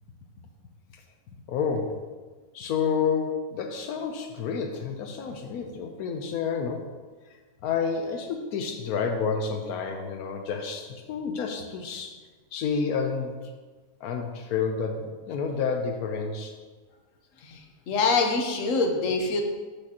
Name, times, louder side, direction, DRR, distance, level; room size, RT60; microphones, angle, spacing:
voice 1, 1.5-2.0 2.5-6.9 7.6-12.1 12.5-13.3 14.0-16.5, left 5 dB, 85° left, 4 dB, 1.2 m, -29 dB
voice 2, 17.9-19.4, left 3 dB, 65° left, 3 dB, 1.2 m, -24 dB
12.5 x 5.0 x 2.9 m, 1.4 s
omnidirectional pair, 1.5 m